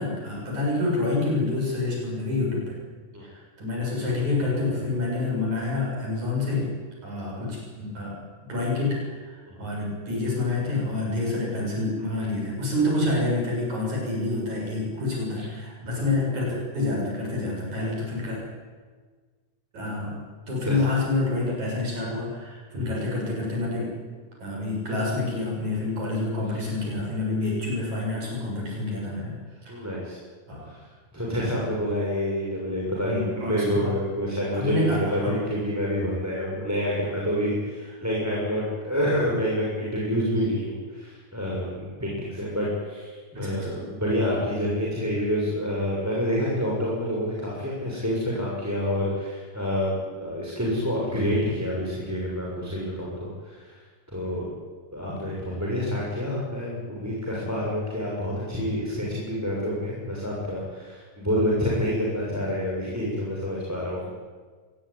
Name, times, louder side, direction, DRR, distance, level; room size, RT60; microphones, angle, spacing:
voice 1, 0.0-2.8 3.2-6.7 7.0-8.2 8.5-18.4 19.7-20.2 20.5-23.9 24.4-29.4 29.6-29.9 30.5-30.7 33.0-33.9 34.5-35.4 43.3-43.8, left 2 dB, 65° right, -2 dB, 8.5 m, -28 dB
voice 2, 29.7-30.2 31.1-53.8 54.1-54.6 54.9-64.1, equal, 5° right, -5 dB, 6.4 m, -28 dB
24.0 x 19.5 x 9.9 m, 1.5 s
omnidirectional pair, 3.6 m